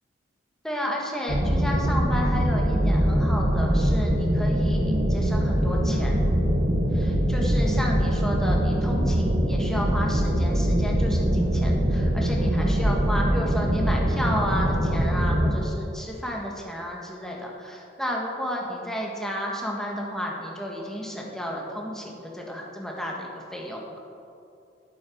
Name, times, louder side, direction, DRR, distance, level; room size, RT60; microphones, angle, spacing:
voice 1, 0.6-6.2 6.9-23.8, equal, 5° left, -2 dB, 1.6 m, -32 dB
sound 1, 1.3-15.6, equal, 40° right, 1.2 m, -23 dB
8.6 x 8.5 x 6.3 m, 2.6 s
head